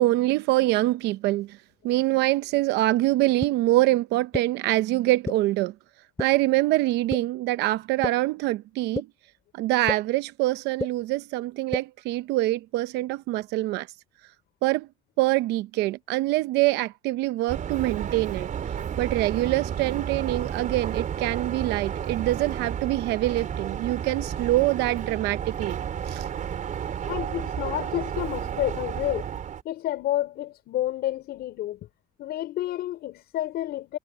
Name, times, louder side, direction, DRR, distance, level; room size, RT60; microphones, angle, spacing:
voice 1, 0.0-1.6 1.8-5.7 6.2-9.1 9.5-13.9 14.6-14.9 15.2-18.5 19.0-25.8 26.1-26.2, right 17 dB, 90° right, 0.8 m, -24 dB
sound 1, 3.4-3.5 4.3-4.4 5.3-5.4 6.2-6.3 7.1-7.2 8.0-8.1 9.0-9.1 9.9-10.0 10.8-10.9 11.7-11.8, left 3 dB, 15° left, 4.2 m, -28 dB
sound 2, 17.5-29.6, right 8 dB, 50° right, 4.6 m, -32 dB
voice 2, 27.1-29.3 29.6-31.8 32.2-34.0, left 13 dB, 75° left, 5.3 m, -30 dB
cardioid pair, 110°, 17 cm